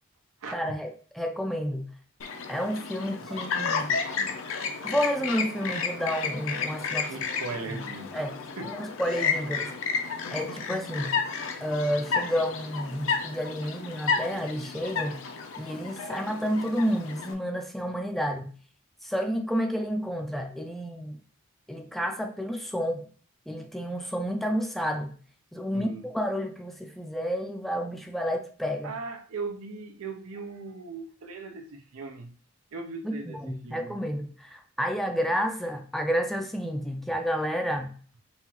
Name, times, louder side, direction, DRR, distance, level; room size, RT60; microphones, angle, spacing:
voice 1, 0.5-1.9 2.5-4.0 4.8-7.1 7.7-7.8 8.1-8.4 8.6-9.7 10.3-11.2 11.6-15.2 15.6-18.5 19.0-21.2 21.7-23.1 23.5-25.2 25.5-28.9 33.0-38.0, equal, ahead, 5 dB, 0.3 m, -30 dB
Chirp tweet, 2.2-17.3, left 5 dB, 70° left, 0.6 m, -32 dB
voice 2, 3.3-4.4 7.1-8.1 8.6-8.8 13.6-13.7 25.7-26.1 28.8-32.3 32.7-34.0, right 4 dB, 90° right, 6 dB, 0.6 m, -39 dB
5.4 x 2.4 x 2.9 m, 0.44 s
head